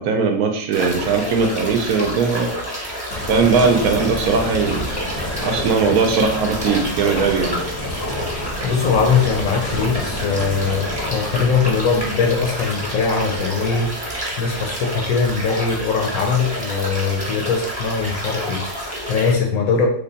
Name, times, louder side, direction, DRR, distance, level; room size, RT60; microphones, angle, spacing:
voice 1, 0.0-2.5 3.3-4.9 5.4-7.6, right 5 dB, 75° right, 5 dB, 1.0 m, -19 dB
sound 1, 0.7-19.3, equal, 5° right, 0.8 m, -29 dB
sound 2, 3.1-15.4 15.9-16.0 19.3-19.4, equal, 40° left, 0.5 m, -31 dB
voice 2, 8.6-19.9, left 5 dB, 70° left, 1 dB, 0.9 m, -21 dB
3.3 x 2.2 x 3.8 m, 0.62 s
omnidirectional pair, 1.7 m